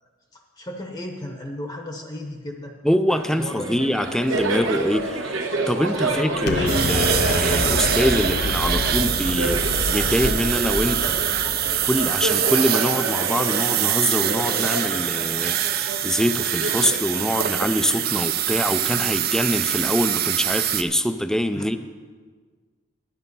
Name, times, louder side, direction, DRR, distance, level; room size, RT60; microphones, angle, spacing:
voice 1, 0.3-2.7 3.3-3.8 6.0-6.4 21.5-21.8, left 1 dB, 25° left, 2 dB, 0.9 m, -35 dB
voice 2, 2.8-11.2 11.8-21.8, equal, 5° left, 10 dB, 0.4 m, -24 dB
Laughter, 3.1-18.1, right 2 dB, 85° right, 1.5 m, -29 dB
Explosion, 6.5-12.5, left 2 dB, 55° left, 0.7 m, -28 dB
sound 1, 6.7-20.8, right 11 dB, 50° right, 0.5 m, -24 dB
10.5 x 10.5 x 5.4 m, 1.5 s
head